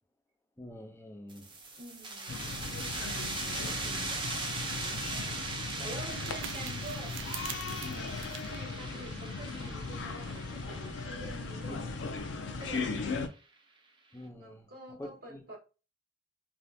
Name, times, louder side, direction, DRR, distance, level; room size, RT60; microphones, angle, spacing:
voice 1, 0.6-1.5 3.7-4.2 11.7-11.8 14.1-14.7 15.0-15.4, left 1 dB, 15° left, 0.5 m, -46 dB
sound 1, 1.3-12.6, right 3 dB, 25° right, 0.7 m, -40 dB
voice 2, 1.8-2.5 5.1-7.1 8.2-11.8 12.4-13.1 14.4-15.6, right 1 dB, 60° right, 1.4 m, -47 dB
sound 2, 2.3-13.3, left 4 dB, 85° left, 0.5 m, -38 dB
sound 3, 5.6-9.8, right 9 dB, 85° right, 0.4 m, -47 dB
3.4 x 2.4 x 2.6 m
head